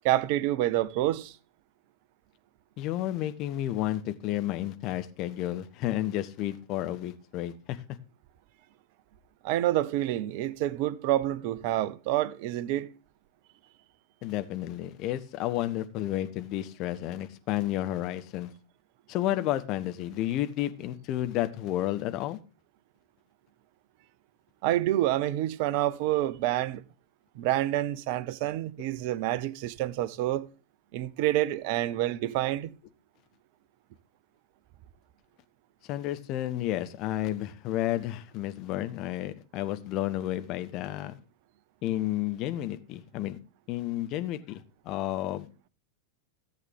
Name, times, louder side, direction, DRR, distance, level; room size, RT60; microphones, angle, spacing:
voice 1, 0.0-1.4 9.4-12.9 24.6-26.8 27.4-30.4 30.9-32.7, right 14 dB, 50° right, 0.7 m, -28 dB
voice 2, 2.8-7.8 14.2-18.5 19.1-22.4 35.9-41.2 41.8-43.4 43.7-45.5, left 13 dB, 40° left, 1.0 m, -31 dB
14.0 x 8.1 x 3.5 m
figure-of-eight pair, 90°, 0 cm